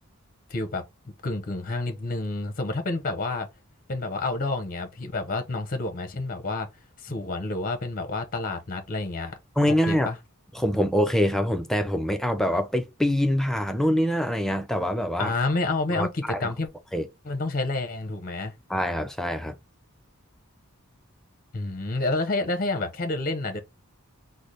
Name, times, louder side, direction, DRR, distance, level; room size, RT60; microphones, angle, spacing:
voice 1, 0.5-0.8 1.2-3.5 3.9-6.7 7.0-9.4 9.7-10.2 15.2-16.7 17.2-18.5 21.5-23.6, left 2 dB, 40° left, 0.6 m, -29 dB
voice 2, 9.6-10.1 10.5-15.3 15.9-16.5 16.9-17.1 18.7-19.5, equal, ahead, 0.3 m, -25 dB
3.2 x 2.1 x 3.9 m
head